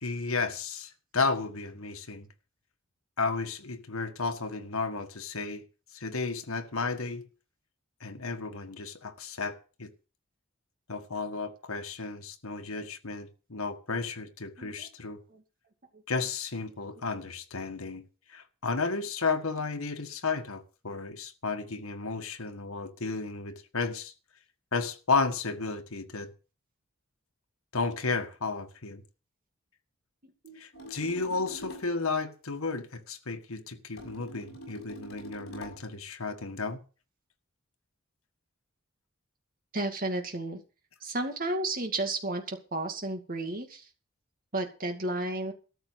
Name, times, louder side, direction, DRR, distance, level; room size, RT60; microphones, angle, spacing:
voice 1, 0.0-2.3 3.2-5.6 5.9-7.2 8.0-9.9 10.9-15.2 16.1-18.0 18.3-24.1 24.7-26.3 27.7-29.0 30.6-36.8, left 4 dB, 85° left, 1.6 m, -33 dB
voice 2, 14.6-14.9 15.3-15.4 15.9-16.0 30.2-30.9 39.7-40.6 41.0-43.9 44.5-45.5, right 2 dB, 40° right, 2.3 m, -33 dB
sound 1, 30.7-32.0 34.0-35.9, equal, 50° left, 6.4 m, -44 dB
13.5 x 6.8 x 8.0 m
head